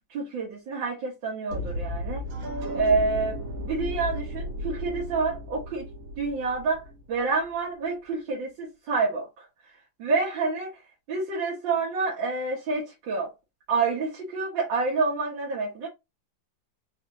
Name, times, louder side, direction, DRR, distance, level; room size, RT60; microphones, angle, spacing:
voice 1, 0.1-2.3 2.7-5.9 6.2-10.8 11.1-13.3 13.7-15.9, right 4 dB, 70° right, 1.8 m, -28 dB
sound 1, 1.5-7.5, equal, 85° right, 1.9 m, -34 dB
4.3 x 2.6 x 2.8 m
omnidirectional pair, 2.1 m